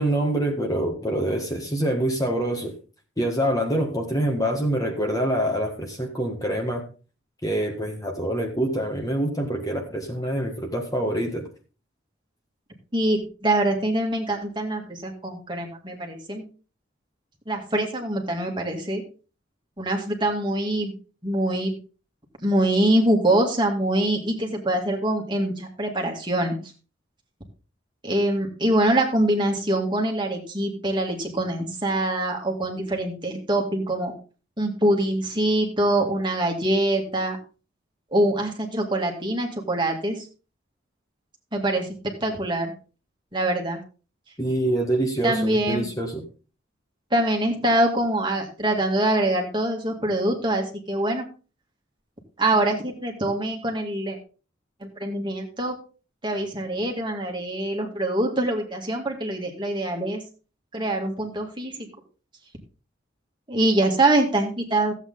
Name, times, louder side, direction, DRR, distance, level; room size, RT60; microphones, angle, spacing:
voice 1, 0.0-2.7 3.2-6.8 7.4-11.5 44.4-46.2, right 1 dB, 20° left, 2 dB, 1.6 m, -25 dB
voice 2, 12.9-16.4 17.5-19.0 19.8-20.9 21.2-21.7 22.4-26.5 28.0-34.1 34.6-37.4 38.1-40.2 41.5-41.9 42.2-42.7 43.3-43.8 45.2-45.9 47.1-51.2 52.4-54.2 54.8-55.7 56.2-60.2 60.7-61.9 63.5-64.9, right 1 dB, 25° right, 1 dB, 2.1 m, -24 dB
14.5 x 8.3 x 3.9 m, 0.35 s
head